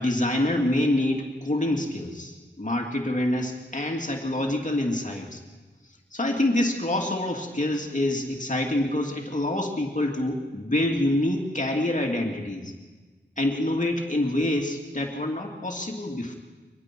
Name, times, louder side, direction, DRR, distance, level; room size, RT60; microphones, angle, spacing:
voice 1, 0.0-5.4 6.1-12.7 13.4-16.3, left 1 dB, 40° left, 1 dB, 2.7 m, -26 dB
24.5 x 20.0 x 6.1 m, 1.3 s
wide cardioid pair, 60°, 19 cm